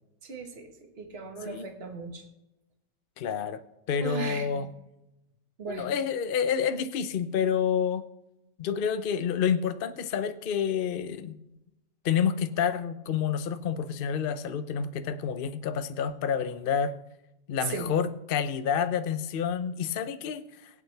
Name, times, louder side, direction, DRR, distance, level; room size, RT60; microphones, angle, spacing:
voice 1, 0.2-2.2 4.0-4.6 5.6-5.9 17.6-17.9, right 4 dB, 35° right, 3 dB, 1.8 m, -37 dB
voice 2, 3.2-3.6 3.9-4.7 5.7-8.0 8.6-11.4 12.0-16.9 17.5-20.7, left 7 dB, 80° left, 10 dB, 0.4 m, -29 dB
23.0 x 8.5 x 3.4 m, 0.94 s
omnidirectional pair, 2.0 m